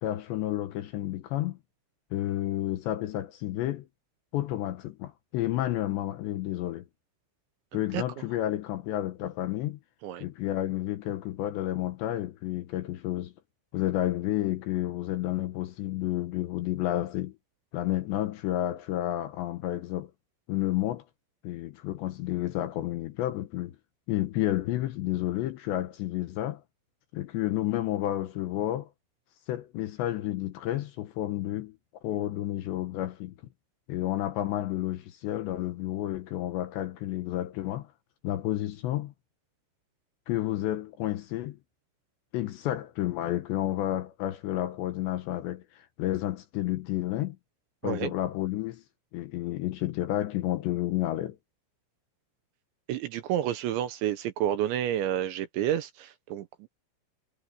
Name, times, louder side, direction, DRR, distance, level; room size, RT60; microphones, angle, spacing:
voice 1, 0.0-1.6 2.1-3.9 4.3-6.8 7.7-9.8 10.2-13.3 13.7-17.3 17.7-20.1 20.5-21.0 21.4-23.8 24.1-26.6 27.1-28.9 29.5-31.8 32.0-33.3 33.9-37.9 38.2-39.1 40.3-41.6 42.3-47.4 47.8-48.8 49.1-51.4, left 14 dB, 75° left, 2.8 m, -31 dB
voice 2, 7.7-8.0 10.0-10.2 47.8-48.1 52.9-56.7, right 11 dB, 75° right, 3.0 m, -30 dB
omnidirectional pair, 6.0 m